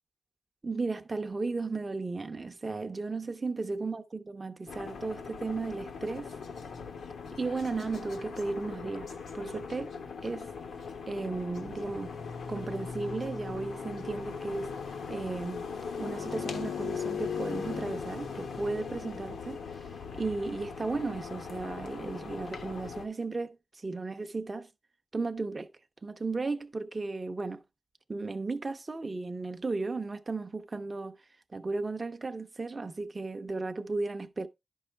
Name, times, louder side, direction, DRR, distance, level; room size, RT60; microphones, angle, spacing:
voice 1, 0.6-6.3 7.3-10.0 10.2-10.5 11.1-12.2 12.5-14.8 15.1-15.7 16.0-19.6 20.1-24.7 25.1-25.7 26.0-27.6 28.1-31.2 31.5-34.5, right 3 dB, 30° right, 0.6 m, -35 dB
sound 1, 4.7-23.1, left 6 dB, 90° left, 1.2 m, -39 dB
11.0 x 5.5 x 3.2 m
wide cardioid pair, 110°, 0 cm